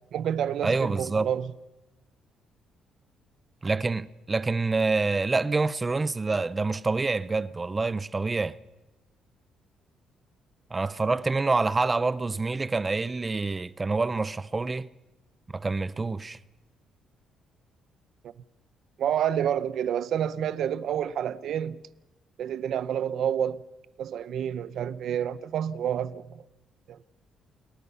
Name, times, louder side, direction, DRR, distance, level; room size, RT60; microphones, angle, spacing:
voice 1, 0.1-1.5 18.2-18.3 19.0-21.8 22.4-23.6 24.0-26.3 26.9-27.0, right 9 dB, 60° right, 0.8 m, -29 dB
voice 2, 0.6-1.3 3.6-8.6 10.7-14.9 15.5-16.4, right 3 dB, 20° right, 0.7 m, -27 dB
29.0 x 19.5 x 5.6 m
cardioid pair, 140°, 0 cm